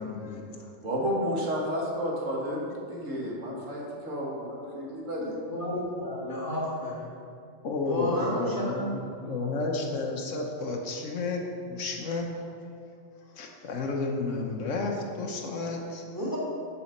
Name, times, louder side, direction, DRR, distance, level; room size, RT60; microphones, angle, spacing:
voice 1, 0.0-0.7 4.7-4.8 7.6-9.0 9.3-12.4 13.3-16.0, left 3 dB, 80° left, 1 dB, 1.3 m, -32 dB
voice 2, 0.8-5.4, equal, 80° right, -3 dB, 1.8 m, -31 dB
voice 3, 5.5-7.1 7.8-9.6 16.1-16.4, left 1 dB, 15° left, -6 dB, 1.6 m, -32 dB
7.1 x 4.9 x 6.5 m, 2.4 s
omnidirectional pair, 1.3 m